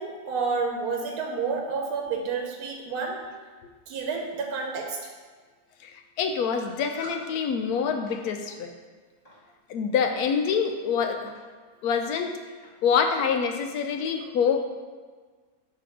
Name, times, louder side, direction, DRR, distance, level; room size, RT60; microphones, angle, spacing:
voice 1, 0.0-3.2 3.9-5.1, right 4 dB, 75° right, 1 dB, 1.2 m, -30 dB
voice 2, 5.8-8.7 9.7-11.3 11.8-12.3 12.8-14.6, left 6 dB, 80° left, 5 dB, 1.1 m, -26 dB
sound 1, 6.6-7.2 7.9-8.2 9.2-9.4 10.1-10.5 11.3-11.5 11.8-11.9 12.6-12.8, left 2 dB, 25° left, 1.4 m, -45 dB
5.8 x 3.3 x 5.0 m, 1.5 s
omnidirectional pair, 1.6 m